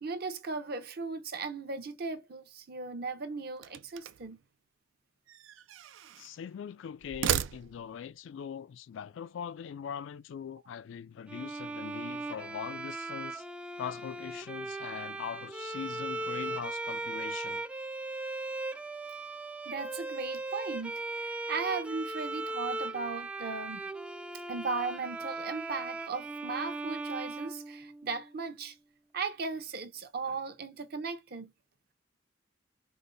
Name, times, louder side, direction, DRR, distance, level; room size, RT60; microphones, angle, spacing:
voice 1, 0.0-4.4 19.7-23.8 24.5-28.8 29.1-31.5, right 4 dB, 50° right, 0.7 m, -37 dB
sound 1, 3.6-4.4 5.3-6.4 7.0-8.1, right 10 dB, 80° right, 0.4 m, -35 dB
voice 2, 6.2-13.4 13.8-17.6, left 8 dB, 75° left, 0.3 m, -41 dB
Bowed string instrument, 11.3-28.3, right 2 dB, 5° right, 0.3 m, -38 dB
5.1 x 2.1 x 3.9 m
head